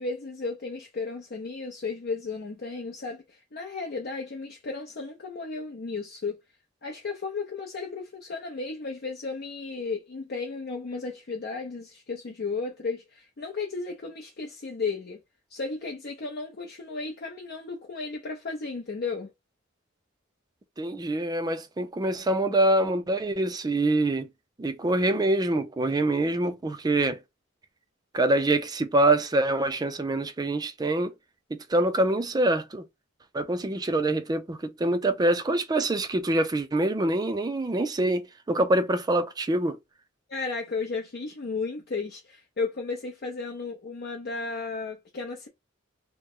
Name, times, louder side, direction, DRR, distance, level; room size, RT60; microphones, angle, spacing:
voice 1, 0.0-6.4 6.8-15.2 15.5-19.3 40.3-45.5, left 4 dB, 55° left, 0.6 m, -34 dB
voice 2, 20.8-24.3 24.6-27.2 28.1-31.1 31.5-32.8 33.3-39.8, right 2 dB, 20° right, 0.4 m, -25 dB
2.9 x 2.1 x 3.6 m
head